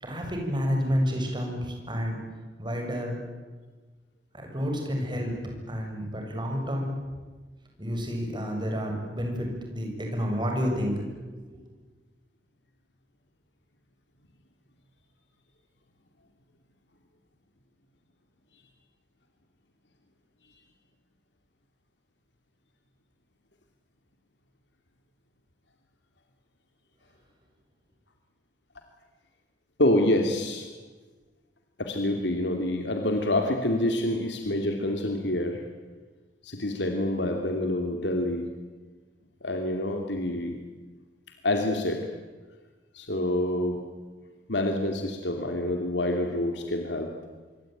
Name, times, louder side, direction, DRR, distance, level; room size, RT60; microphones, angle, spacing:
voice 1, 0.0-2.2 2.6-3.1 4.3-5.3 5.7-6.9 7.8-11.6, equal, 25° right, 2 dB, 7.3 m, -30 dB
voice 2, 29.8-30.7 31.8-35.6 36.4-38.5 39.4-40.6 41.4-42.1 42.9-43.8 44.5-47.1, left 1 dB, 80° left, 4 dB, 2.8 m, -27 dB
26.0 x 24.5 x 9.3 m, 1.3 s
head